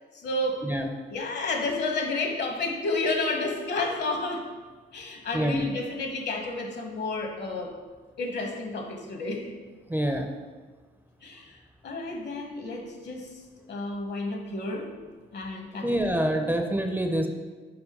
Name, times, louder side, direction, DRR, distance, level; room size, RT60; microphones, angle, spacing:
voice 1, 0.2-0.6 1.1-4.4 4.9-7.7 8.2-9.5 11.2-11.6 11.8-13.3 13.7-14.9 15.3-16.0, left 2 dB, 60° left, 3 dB, 1.3 m, -31 dB
voice 2, 5.3-5.7 9.9-10.3 15.8-17.3, right 1 dB, 10° right, 4 dB, 0.6 m, -26 dB
4.9 x 4.6 x 5.3 m, 1.4 s
cardioid pair, 90°, 20 cm